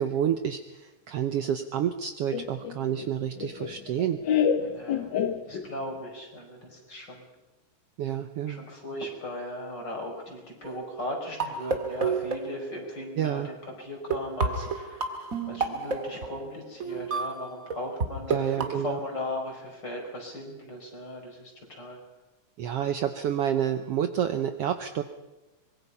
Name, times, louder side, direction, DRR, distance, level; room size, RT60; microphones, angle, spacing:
voice 1, 0.0-4.2 8.0-8.6 13.2-13.5 18.3-19.0 22.6-25.0, right 9 dB, 70° right, 8 dB, 1.6 m, -29 dB
Laughter, 2.3-6.0, left 8 dB, 60° left, 1.3 m, -29 dB
voice 2, 4.6-5.1 5.5-7.2 8.5-22.0, left 1 dB, 35° left, 2 dB, 5.3 m, -38 dB
sound 1, 10.6-13.1 13.8-13.9 14.1-18.1 18.3-18.7, right 4 dB, 30° right, 1.9 m, -31 dB
24.5 x 21.5 x 5.5 m, 1.1 s
omnidirectional pair, 3.4 m